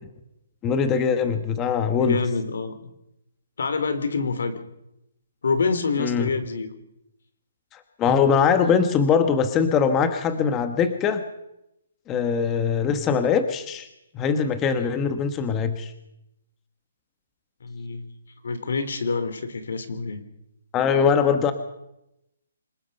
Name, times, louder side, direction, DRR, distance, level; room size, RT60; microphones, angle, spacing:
voice 1, 0.6-2.2 6.0-6.3 7.7-11.2 12.1-13.9 14.1-15.9 20.7-21.5, left 6 dB, 15° left, 9 dB, 1.3 m, -22 dB
voice 2, 2.0-2.9 3.6-4.6 5.4-6.7 17.6-18.1 18.4-20.2, left 4 dB, 75° left, 11 dB, 3.2 m, -26 dB
27.0 x 18.5 x 5.5 m, 0.86 s
hypercardioid pair, 165°, 0 cm